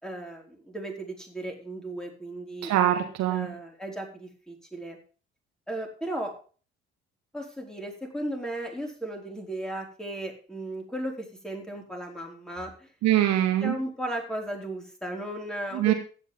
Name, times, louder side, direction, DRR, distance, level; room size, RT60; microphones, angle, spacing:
voice 1, 0.0-2.7 3.3-5.0 5.7-6.3 7.3-12.9 13.6-15.9, right 1 dB, ahead, 1 dB, 4.5 m, -35 dB
voice 2, 2.6-3.5 13.0-13.7 15.7-15.9, right 12 dB, 60° right, 6 dB, 1.6 m, -23 dB
15.0 x 10.0 x 3.4 m, 0.38 s
figure-of-eight pair, 50°, 30 cm